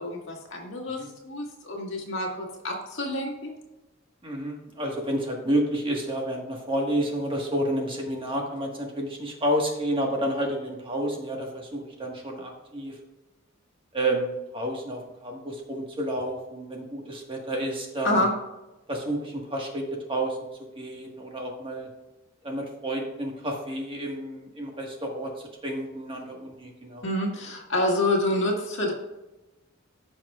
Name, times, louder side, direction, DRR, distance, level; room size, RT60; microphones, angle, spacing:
voice 1, 0.0-3.5 18.0-18.3 27.0-28.9, left 1 dB, 60° left, 0 dB, 1.9 m, -27 dB
voice 2, 4.2-12.9 13.9-18.2 18.9-20.4 20.8-21.9 22.4-25.3 25.6-27.1, right 1 dB, 25° right, 0 dB, 1.5 m, -30 dB
15.5 x 5.9 x 2.4 m, 1.1 s
head